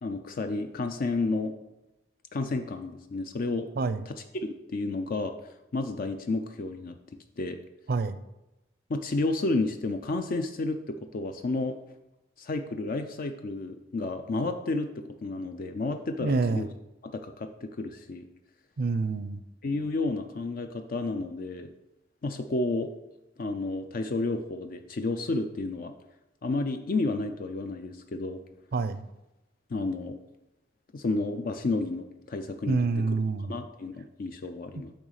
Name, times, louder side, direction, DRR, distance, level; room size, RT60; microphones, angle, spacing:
voice 1, 0.0-1.5 2.3-3.7 4.1-5.3 5.7-7.0 7.4-7.6 8.9-11.8 12.4-16.7 17.0-18.3 19.6-21.7 22.2-22.9 23.4-25.9 26.4-28.4 29.7-30.2 30.9-32.8 33.1-33.2 33.5-34.9, left 2 dB, 50° left, 7 dB, 0.4 m, -31 dB
voice 2, 16.2-16.7 18.8-19.4 28.7-29.0 32.7-33.6 34.8-34.9, right 3 dB, 55° right, 12 dB, 0.5 m, -27 dB
8.8 x 3.1 x 6.4 m, 0.98 s
head